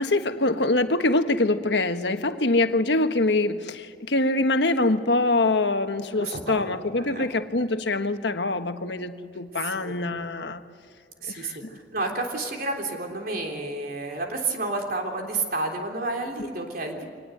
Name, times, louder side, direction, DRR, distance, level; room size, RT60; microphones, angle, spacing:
voice 1, 0.0-10.6 11.3-11.7 16.4-16.5, left 2 dB, 80° left, 7 dB, 1.4 m, -24 dB
voice 2, 6.2-7.3 9.6-9.9 11.2-17.0, right 2 dB, 55° right, 2 dB, 3.5 m, -31 dB
25.0 x 19.0 x 7.9 m, 2.1 s
head